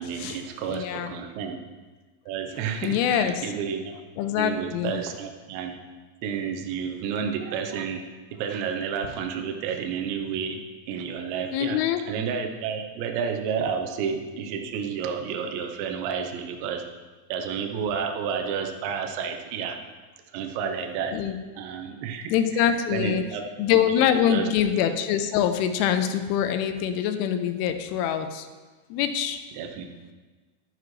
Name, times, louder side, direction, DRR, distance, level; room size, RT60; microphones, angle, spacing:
voice 1, 0.0-1.6 2.3-4.0 4.4-5.8 6.2-8.0 8.3-10.6 10.9-16.8 17.3-19.8 20.3-21.2 21.6-23.4 24.3-24.5 29.5-29.9, right 7 dB, 75° right, 4 dB, 2.9 m, -31 dB
voice 2, 0.7-1.1 2.8-3.3 4.2-4.9 11.5-12.0 21.1-21.4 22.3-23.2 23.6-28.5 28.9-29.4, left 9 dB, 85° left, 8 dB, 3.1 m, -24 dB
12.0 x 9.2 x 3.1 m, 1.3 s
omnidirectional pair, 5.7 m